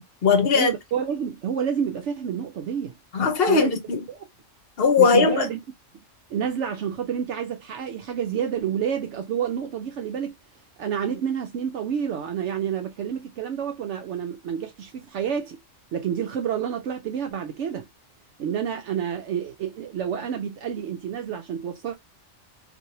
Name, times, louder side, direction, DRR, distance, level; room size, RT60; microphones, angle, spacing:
voice 1, 0.0-0.7 3.1-4.0 4.8-5.5, left 5 dB, 55° left, 0.9 m, -19 dB
voice 2, 0.5-2.9 3.5-3.7 4.1-4.2 5.0-5.6 6.3-10.4 10.8-15.6 15.9-17.9 18.4-21.9, right 8 dB, 70° right, 0.8 m, -29 dB
3.1 x 2.6 x 2.7 m
omnidirectional pair, 1.3 m